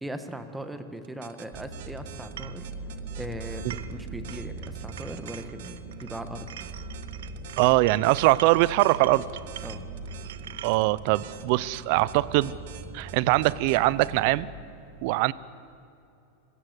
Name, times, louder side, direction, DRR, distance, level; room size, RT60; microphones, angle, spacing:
voice 1, 0.0-2.7 3.2-6.5 9.6-9.8, right 1 dB, 5° right, 9 dB, 1.4 m, -39 dB
sound 1, 1.0-14.2, right 12 dB, 70° right, 1.4 m, -47 dB
sound 2, 1.5-14.5, right 3 dB, 25° right, 4.6 m, -41 dB
sound 3, 2.4-2.6 3.5-4.0 4.3-6.2 6.5-10.8, right 11 dB, 85° right, 0.8 m, -44 dB
voice 2, 7.6-9.2 10.6-12.6 12.9-14.5 15.0-15.3, right 19 dB, 55° right, 20 dB, 0.6 m, -22 dB
26.0 x 16.5 x 8.2 m, 2.7 s
supercardioid pair, 150°, 0 cm